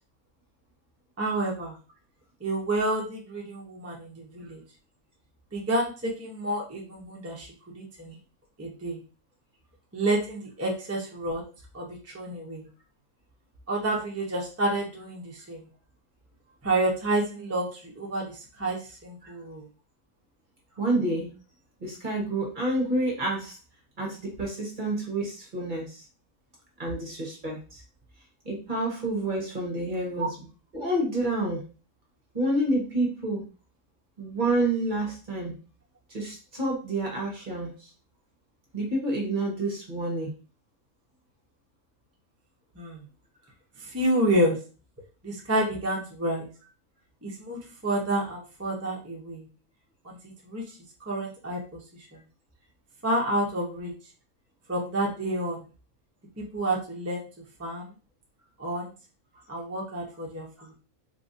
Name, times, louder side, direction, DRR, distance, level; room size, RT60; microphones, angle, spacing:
voice 1, 1.2-1.8 2.4-4.6 5.5-7.5 7.7-8.1 8.6-9.0 9.9-11.4 11.7-12.7 13.7-15.7 16.6-19.7 30.2-30.3 42.8-43.0 43.8-44.6 45.2-46.5 47.2-49.5 50.0-50.2 50.4-50.8 51.1-51.6 53.0-53.9 54.7-55.6 56.4-57.3 57.6-57.9 58.6-58.9 59.5-60.7, right 1 dB, 15° right, -2 dB, 0.6 m, -29 dB
voice 2, 20.8-21.3 21.8-23.6 24.0-26.0 26.8-27.8 28.4-30.5 30.7-31.7 32.3-33.5 34.2-35.5 36.1-37.9 38.7-40.3, right 1 dB, 40° right, -1 dB, 1.0 m, -29 dB
3.8 x 2.5 x 2.6 m, 0.34 s
omnidirectional pair, 1.5 m